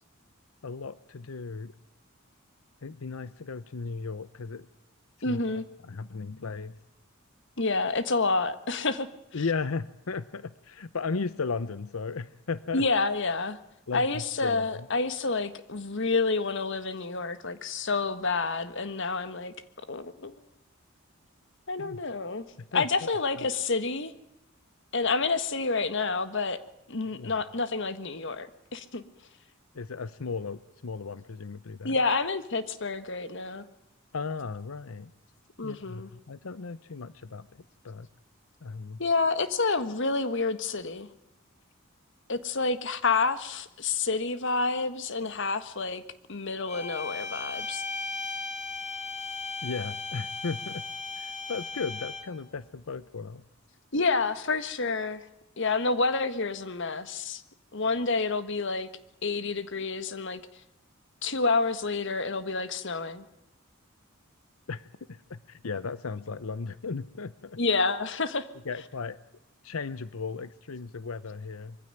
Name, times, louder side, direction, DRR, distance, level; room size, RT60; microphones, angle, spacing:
voice 1, 0.6-1.7 2.8-4.7 5.2-5.4 5.8-6.7 9.3-12.9 13.9-14.9 21.8-22.0 22.6-22.9 23.4-23.5 27.1-27.4 29.7-32.0 34.1-35.1 35.6-37.5 37.8-38.1 38.6-39.0 49.6-50.8 51.2-53.4 64.7-67.6 68.6-69.2 69.6-71.8, left 4 dB, 80° left, 16 dB, 0.8 m, -36 dB
voice 2, 5.2-5.6 7.6-9.1 12.7-13.6 13.9-19.5 19.9-20.3 21.7-22.4 22.7-24.1 24.9-26.6 26.9-28.5 28.7-29.0 31.8-33.6 35.6-36.1 39.0-41.1 42.3-46.0 46.3-47.8 53.9-55.3 55.6-57.4 57.7-58.9 59.2-60.4 61.2-63.2 67.6-68.5, left 3 dB, 60° left, 12 dB, 1.5 m, -28 dB
sound 1, 46.7-52.4, left 4 dB, 35° left, 3.6 m, -36 dB
23.0 x 15.5 x 9.0 m, 0.86 s
head